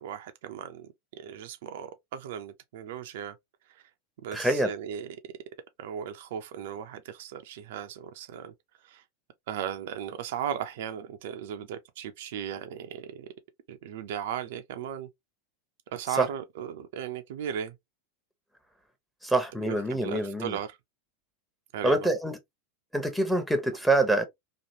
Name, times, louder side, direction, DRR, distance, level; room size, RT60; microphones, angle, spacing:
voice 1, 0.0-3.4 3.7-3.8 4.2-5.3 5.8-8.5 8.8-9.0 9.5-13.3 13.7-15.1 15.9-17.7 19.7-20.8 21.7-22.1, right 9 dB, 65° right, 0.4 m, -37 dB
voice 2, 4.3-4.7 16.2-16.3 19.2-20.5 21.8-22.4 22.9-24.2, right 2 dB, ahead, 0.8 m, -25 dB
2.9 x 2.4 x 2.7 m
figure-of-eight pair, 85°, 0 cm